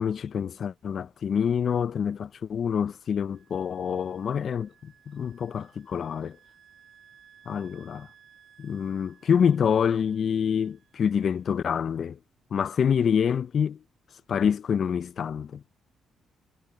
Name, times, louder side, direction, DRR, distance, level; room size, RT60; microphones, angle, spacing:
voice 1, 0.0-6.4 7.5-8.1 8.6-12.2 12.5-13.8 14.3-15.6, left 7 dB, 55° left, 0.4 m, -26 dB
Wind instrument woodwind instrument, 3.3-11.6, right 8 dB, 55° right, 6.7 m, -59 dB
cardioid pair, 90°, 0 cm